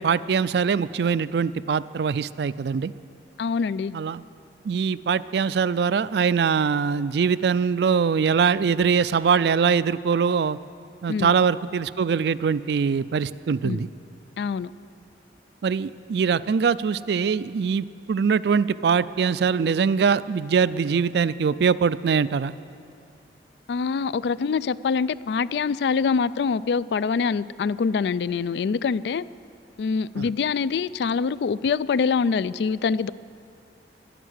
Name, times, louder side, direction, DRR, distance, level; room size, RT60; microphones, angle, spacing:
voice 1, 0.0-2.9 3.9-4.2 4.7-10.6 11.0-13.9 15.6-22.5 30.2-30.3, right 6 dB, 70° right, 17 dB, 0.3 m, -22 dB
voice 2, 3.4-3.9 11.1-11.3 13.6-13.8 14.4-14.7 23.7-29.2 29.8-33.1, left 5 dB, 70° left, 18 dB, 0.3 m, -24 dB
12.0 x 11.0 x 9.4 m, 2.5 s
head